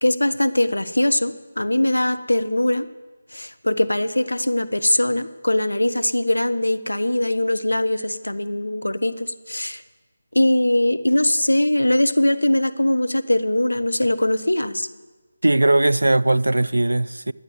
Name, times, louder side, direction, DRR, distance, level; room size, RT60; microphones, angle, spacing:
voice 1, 0.0-2.9 3.3-9.8 10.3-14.9, left 1 dB, 90° left, 0.9 m, -21 dB
voice 2, 15.4-17.3, right 2 dB, 80° right, 0.4 m, -19 dB
11.0 x 8.8 x 7.8 m
figure-of-eight pair, 160°, 0 cm